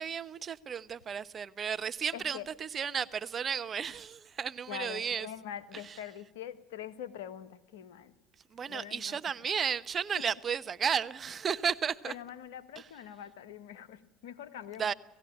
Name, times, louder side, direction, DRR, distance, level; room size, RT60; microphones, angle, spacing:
voice 1, 0.0-5.3 5.8-6.0 8.5-12.1 12.8-12.9 14.8-14.9, right 7 dB, 35° right, 0.9 m, -33 dB
voice 2, 2.1-2.5 4.7-8.1 8.7-9.2 12.0-14.9, left 10 dB, 80° left, 1.4 m, -44 dB
18.5 x 16.0 x 9.9 m
hypercardioid pair, 75°, 0 cm